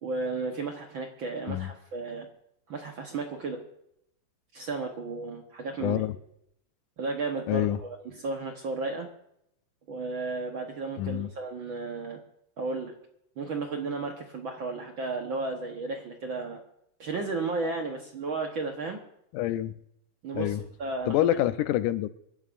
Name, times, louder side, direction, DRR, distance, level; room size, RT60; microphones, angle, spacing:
voice 1, 0.0-2.3 2.7-3.6 4.5-6.0 7.0-9.1 9.9-12.2 12.6-12.9 13.4-16.6 17.0-19.0 20.2-21.2, right 3 dB, 60° right, 2 dB, 1.4 m, -33 dB
voice 2, 5.8-6.2 7.5-7.8 11.0-11.3 19.3-19.7 20.3-20.6 21.1-22.1, left 13 dB, 85° left, 12 dB, 2.2 m, -27 dB
27.0 x 11.5 x 2.5 m, 0.76 s
omnidirectional pair, 3.5 m